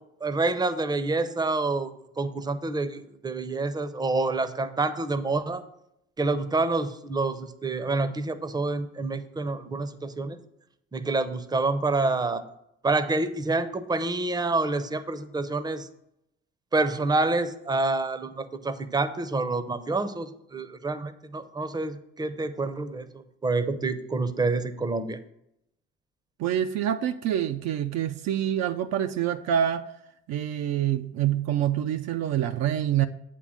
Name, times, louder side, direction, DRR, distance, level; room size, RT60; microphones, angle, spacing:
voice 1, 0.2-1.9 2.2-5.6 6.2-10.4 10.9-12.4 12.8-15.9 16.7-25.2, right 3 dB, 10° right, 12 dB, 0.6 m, -27 dB
voice 2, 26.4-29.9 30.3-33.1, right 10 dB, 55° right, 8 dB, 0.5 m, -26 dB
8.1 x 3.8 x 6.3 m, 0.79 s
hypercardioid pair, 60°, 33 cm